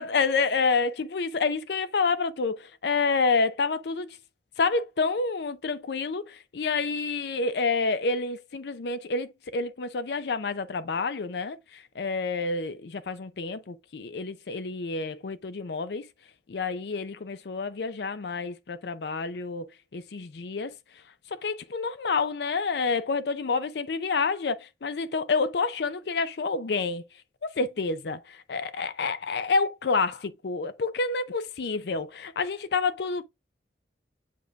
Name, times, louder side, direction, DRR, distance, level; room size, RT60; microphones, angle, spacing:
voice 1, 0.0-4.2 4.6-16.1 16.5-19.7 19.9-20.7 21.3-27.0 27.4-33.2, left 4 dB, 70° left, 0.5 m, -28 dB
7.8 x 5.2 x 2.3 m
head